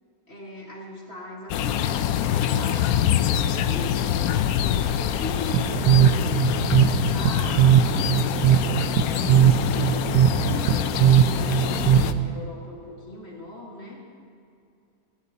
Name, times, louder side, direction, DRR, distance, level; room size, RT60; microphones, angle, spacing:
voice 1, 0.3-4.2 4.5-6.7 7.1-9.6 10.3-14.1, left 1 dB, 35° left, -3 dB, 1.9 m, -39 dB
sound 1, 1.5-12.1, left 10 dB, 75° left, 0.9 m, -25 dB
sound 2, 5.5-12.4, right 10 dB, 70° right, 1.1 m, -20 dB
19.0 x 15.0 x 2.8 m, 2.5 s
omnidirectional pair, 2.0 m